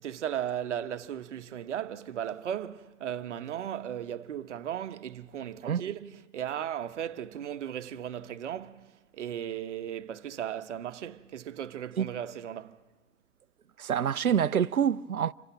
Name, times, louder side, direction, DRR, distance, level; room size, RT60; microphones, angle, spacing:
voice 1, 0.0-12.8, right 10 dB, 55° right, 1.1 m, -36 dB
voice 2, 13.8-15.3, right 8 dB, 85° right, 0.7 m, -26 dB
26.5 x 15.5 x 8.9 m
figure-of-eight pair, 125°, 42 cm